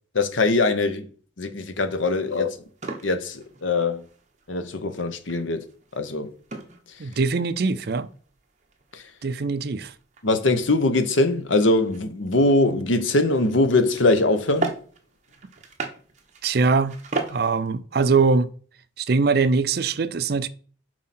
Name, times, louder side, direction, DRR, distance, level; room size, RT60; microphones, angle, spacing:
voice 1, 0.1-1.1 1.4-2.5 3.0-4.1 4.5-5.6 5.9-6.3 8.9-9.0 10.2-14.7, left 2 dB, 85° left, 0.9 m, -22 dB
sound 1, 1.6-17.7, right 3 dB, 40° right, 1.0 m, -39 dB
voice 2, 7.0-8.1 9.2-9.9 16.4-17.0 17.3-18.5 19.0-20.5, right 4 dB, 55° right, 0.5 m, -22 dB
7.5 x 4.8 x 4.3 m
head